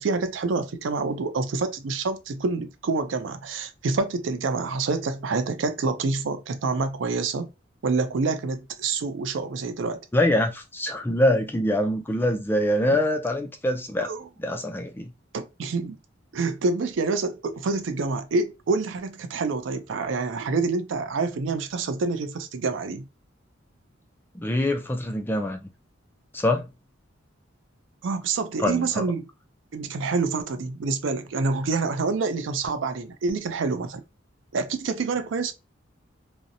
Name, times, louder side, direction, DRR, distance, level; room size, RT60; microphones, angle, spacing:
voice 1, 0.0-7.5 7.8-10.0 14.0-14.3 15.3-16.0 16.3-23.1 28.0-29.3 29.7-34.0 34.5-35.5, right 4 dB, 70° right, 0.4 m, -27 dB
voice 2, 10.1-14.1 14.4-15.1 24.3-25.6 26.3-26.6 28.6-29.0, left 1 dB, 10° left, 0.3 m, -24 dB
2.5 x 2.0 x 2.6 m
head